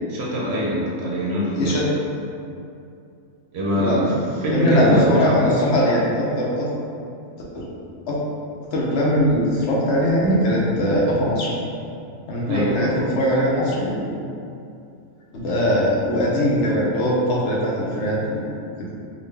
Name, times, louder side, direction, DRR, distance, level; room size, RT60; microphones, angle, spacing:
voice 1, 0.1-1.8 3.5-5.6 12.5-12.9, equal, 65° right, -5 dB, 0.8 m, -23 dB
voice 2, 1.5-1.8 3.7-4.0 4.5-6.7 7.5-7.7 8.1-8.2 8.7-11.5 12.3-14.1 15.3-18.4, equal, 65° left, -5 dB, 0.9 m, -21 dB
3.7 x 2.2 x 3.3 m, 2.5 s
omnidirectional pair, 1.3 m